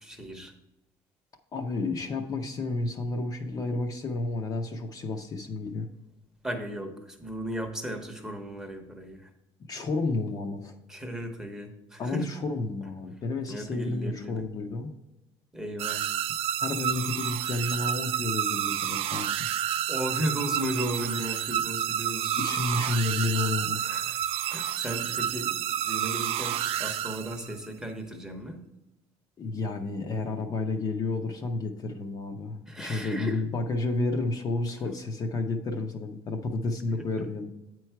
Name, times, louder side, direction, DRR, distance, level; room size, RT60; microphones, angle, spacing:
voice 1, 0.0-0.5 6.4-9.3 10.9-12.3 13.5-14.5 15.5-16.0 19.9-22.5 23.8-24.2 24.5-28.6 32.7-33.4 37.2-37.3, equal, 5° right, 3 dB, 0.9 m, -35 dB
voice 2, 1.5-5.9 9.7-10.8 12.0-14.9 16.6-19.4 22.4-23.8 29.4-37.5, left 3 dB, 35° left, 4 dB, 0.6 m, -31 dB
sound 1, 15.8-27.7, right 11 dB, 60° right, 0.4 m, -30 dB
8.3 x 4.6 x 4.5 m, 0.94 s
cardioid pair, 150°, 11 cm